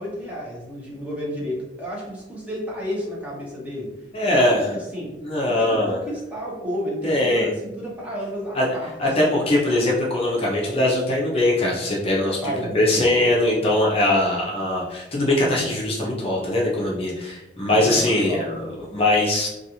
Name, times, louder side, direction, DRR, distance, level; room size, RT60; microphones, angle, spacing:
voice 1, 0.0-3.9 4.2-5.1 5.5-8.9 12.4-13.3 17.6-18.5 18.8-18.9, equal, 10° right, -5 dB, 0.7 m, -31 dB
voice 2, 4.1-4.7 5.2-6.0 7.0-7.5 8.5-8.6 9.0-12.4 12.7-18.6 18.9-19.5, left 1 dB, 30° left, -3 dB, 0.5 m, -21 dB
2.4 x 2.3 x 2.8 m, 0.94 s
head